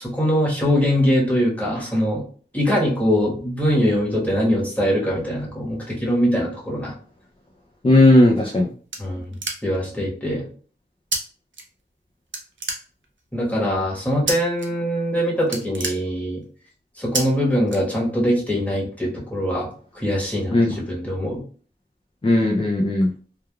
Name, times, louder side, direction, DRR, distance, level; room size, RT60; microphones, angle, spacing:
voice 1, 0.0-2.2 2.5-6.9 9.0-9.2 9.6-10.5 13.3-16.4 17.0-19.7 19.9-21.4, equal, 10° left, -5 dB, 1.2 m, -22 dB
voice 2, 7.8-8.7 20.5-20.7 22.2-23.1, left 1 dB, 30° left, 0 dB, 0.4 m, -16 dB
sound 1, 8.2-9.9 11.1-11.2 11.5-12.0 12.3-13.3 14.3-14.7 15.0-15.1 15.4-16.6 17.1-17.2 17.7-18.3, right 3 dB, 75° right, 0.6 m, -29 dB
3.3 x 2.3 x 2.3 m, 0.43 s
wide cardioid pair, 40°, 19 cm